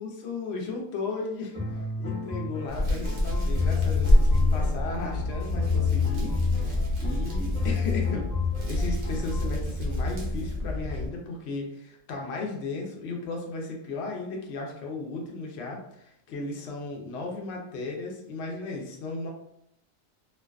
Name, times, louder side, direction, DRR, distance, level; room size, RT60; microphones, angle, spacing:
voice 1, 0.0-8.3 8.7-19.3, left 3 dB, 65° left, 0 dB, 0.7 m, -35 dB
sound 1, 1.5-9.5, left 6 dB, 5° left, 0.4 m, -30 dB
Hands, 2.7-11.1, left 1 dB, 45° right, 0.7 m, -27 dB
2.5 x 2.1 x 2.3 m, 0.76 s
omnidirectional pair, 1.4 m